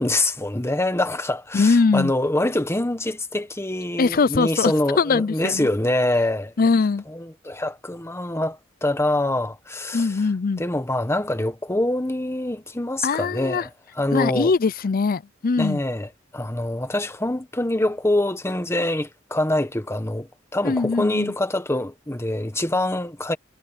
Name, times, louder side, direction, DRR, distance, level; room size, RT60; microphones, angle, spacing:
voice 1, 0.0-6.5 7.1-10.2 10.6-13.7 13.9-14.5 15.6-23.4, left 1 dB, 15° left, 1.3 m, -25 dB
voice 2, 1.5-2.1 4.0-5.7 6.6-7.0 9.9-10.6 13.0-13.7 14.1-15.8 20.6-21.3, left 4 dB, 45° left, 0.5 m, -21 dB
head